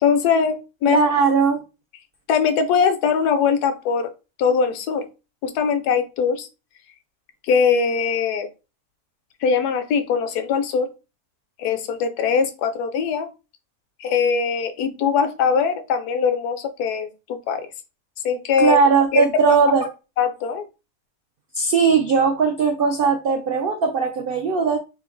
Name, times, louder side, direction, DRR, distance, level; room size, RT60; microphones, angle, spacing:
voice 1, 0.0-1.0 2.3-4.1 4.4-5.1 5.4-6.5 7.4-8.5 9.4-10.9 11.6-13.3 14.0-17.7 18.2-18.8 19.1-19.6 20.2-20.7, left 6 dB, 85° left, 1.2 m, -21 dB
voice 2, 0.9-1.6 18.6-19.8 21.5-24.8, right 5 dB, 80° right, 0.5 m, -19 dB
3.6 x 2.7 x 3.8 m
omnidirectional pair, 1.6 m